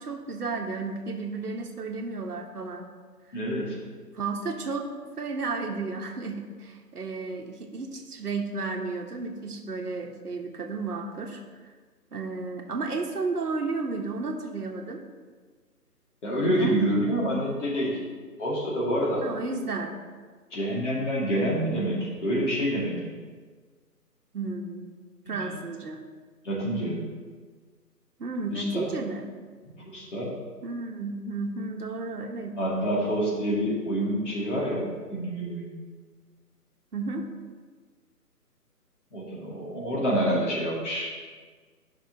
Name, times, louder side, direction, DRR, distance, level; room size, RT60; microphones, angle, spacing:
voice 1, 0.0-2.9 4.1-4.9 5.2-11.4 12.1-15.0 16.4-16.8 19.2-20.0 24.3-24.9 25.3-26.0 28.2-29.3 30.6-32.5 36.9-37.2, right 3 dB, 70° right, 4 dB, 1.1 m, -33 dB
voice 2, 3.3-3.8 16.2-17.9 18.4-19.3 20.5-23.1 25.3-25.5 26.4-27.1 28.5-28.8 29.8-30.3 32.6-35.7 39.1-41.1, equal, 50° left, -5 dB, 2.2 m, -27 dB
11.0 x 5.9 x 2.8 m, 1.5 s
figure-of-eight pair, 150°, 48 cm